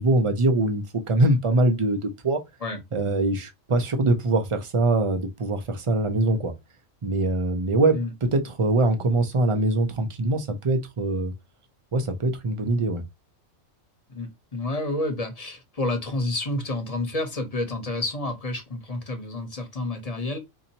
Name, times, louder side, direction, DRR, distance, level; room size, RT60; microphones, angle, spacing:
voice 1, 0.0-2.4 2.9-6.5 7.0-11.3 11.9-13.0, right 2 dB, 35° right, 0.6 m, -23 dB
voice 2, 14.1-20.4, left 2 dB, 30° left, 1.0 m, -29 dB
4.0 x 2.9 x 2.8 m
omnidirectional pair, 1.4 m